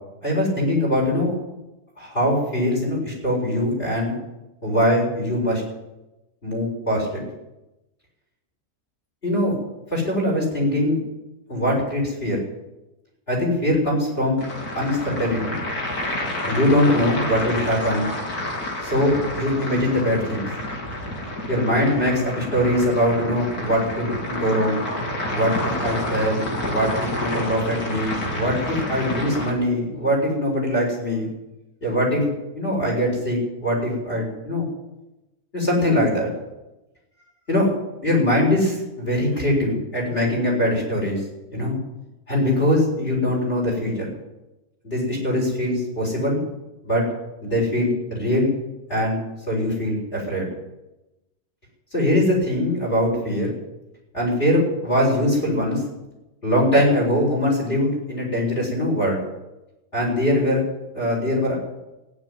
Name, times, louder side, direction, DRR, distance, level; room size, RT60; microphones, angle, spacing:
voice 1, 0.2-1.3 2.0-4.1 4.6-5.6 6.4-7.2 9.2-9.5 9.9-11.0 11.5-12.4 13.3-14.4 14.7-15.6 16.5-18.1 18.8-20.5 21.5-24.8 25.3-27.1 27.3-31.3 31.8-32.2 32.5-34.7 35.5-36.3 37.5-37.7 38.0-41.2 41.5-41.8 42.3-44.1 44.8-46.4 46.8-47.0 47.4-48.5 48.9-49.2 49.5-50.5 51.9-53.5 54.1-55.8 56.4-59.2 59.9-60.6 60.9-61.5, left 1 dB, 40° left, -1 dB, 7.0 m, -22 dB
sound 1, 14.4-29.5, left 1 dB, 85° left, 3.5 m, -29 dB
14.5 x 10.5 x 9.1 m, 0.98 s
omnidirectional pair, 1.6 m